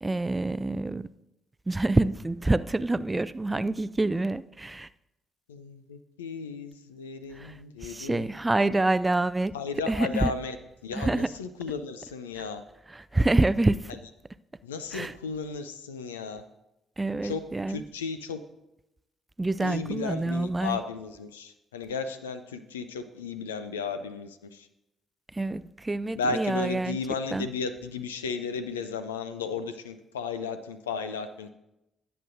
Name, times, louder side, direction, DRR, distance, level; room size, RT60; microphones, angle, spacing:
voice 1, 0.0-1.1 1.7-4.9 7.3-9.5 9.9-10.3 10.9-11.3 12.9-14.0 14.9-15.1 17.0-17.8 19.4-20.8 25.3-27.0 27.3-27.5, right 2 dB, 20° right, 16 dB, 0.4 m, -27 dB
voice 2, 5.5-8.3 9.5-10.6 10.8-12.6 14.6-16.4 17.2-17.4 17.7-18.4 19.6-24.7 26.2-31.5, left 5 dB, 80° left, 11 dB, 0.5 m, -34 dB
18.0 x 7.9 x 2.6 m, 0.90 s
figure-of-eight pair, 45°, 0 cm